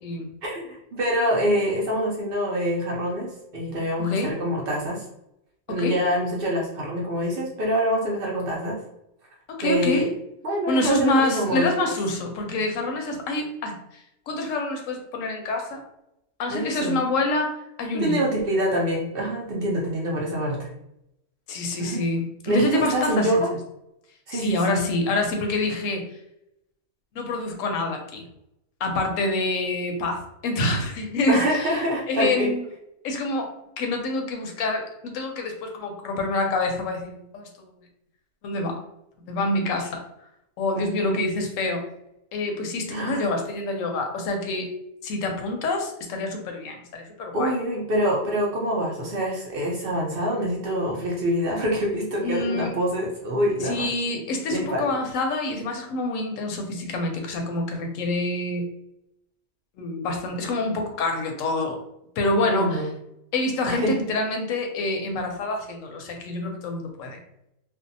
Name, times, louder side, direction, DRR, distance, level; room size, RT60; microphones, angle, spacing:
voice 1, 0.4-5.0 5.7-8.8 9.6-10.1 10.4-11.8 16.5-17.0 17.9-20.7 21.8-22.0 22.5-23.5 24.3-24.8 31.3-32.5 40.8-41.2 42.9-43.3 47.3-53.9 54.5-54.9 62.5-62.9 63.7-64.0, equal, 60° right, -2 dB, 0.6 m, -25 dB
voice 2, 4.0-4.4 5.7-6.0 9.5-10.1 10.7-13.8 14.3-15.8 16.4-18.3 21.5-23.4 24.3-26.1 27.1-28.2 28.8-31.8 32.1-32.6 33.0-33.5 33.8-37.7 38.4-38.8 39.2-40.0 40.6-41.8 42.3-44.7 45.0-47.5 52.2-52.8 53.6-58.7 59.8-61.8 62.2-62.8 63.3-67.2, left 2 dB, 80° left, 3 dB, 1.0 m, -27 dB
2.5 x 2.2 x 2.6 m, 0.82 s
omnidirectional pair, 1.3 m